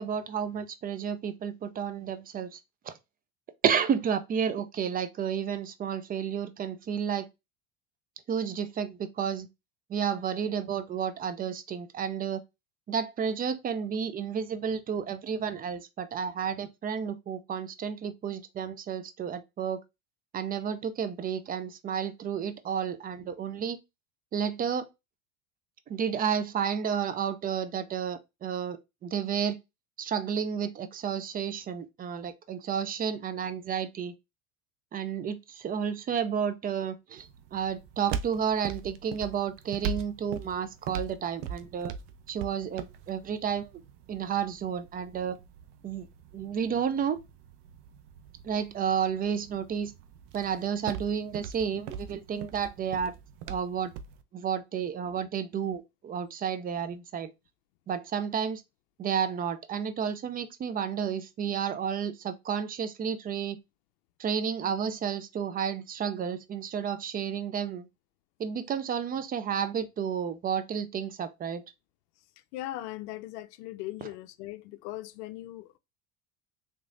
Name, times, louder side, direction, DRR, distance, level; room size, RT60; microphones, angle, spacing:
voice 1, 0.0-2.6 2.9-3.0 3.6-7.3 8.3-9.5 9.9-12.4 12.9-19.8 20.3-23.8 24.3-24.9 25.9-29.6 30.0-34.1 34.9-41.9 42.3-43.7 44.1-45.4 45.8-46.1 46.3-47.2 48.4-49.9 50.3-53.1 53.5-53.9 54.3-57.3 57.9-58.6 59.0-63.6 64.2-67.9 68.4-71.6, right 7 dB, 20° right, 0.3 m, -31 dB
sound 1, 37.2-54.2, right 7 dB, 60° right, 0.7 m, -41 dB
voice 2, 72.5-75.8, left 15 dB, 80° left, 0.6 m, -39 dB
3.6 x 3.2 x 2.5 m
supercardioid pair, 100°, 47 cm